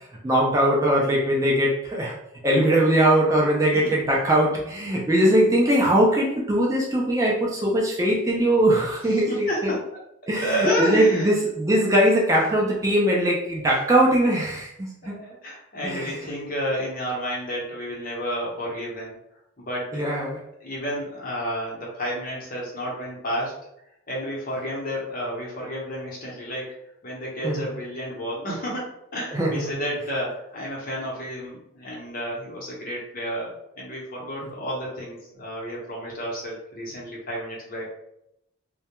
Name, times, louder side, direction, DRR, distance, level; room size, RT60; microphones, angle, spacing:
voice 1, 0.2-2.1 2.4-9.7 10.3-15.2 15.8-16.3 19.9-20.4 27.4-27.7 29.3-29.7, right 1 dB, 15° right, -3 dB, 0.3 m, -21 dB
voice 2, 9.1-9.8 10.3-11.3 15.0-19.1 19.6-20.1 20.6-23.5 24.1-26.7 27.0-37.8, equal, 45° left, -3 dB, 0.8 m, -31 dB
2.2 x 2.1 x 2.9 m, 0.79 s
head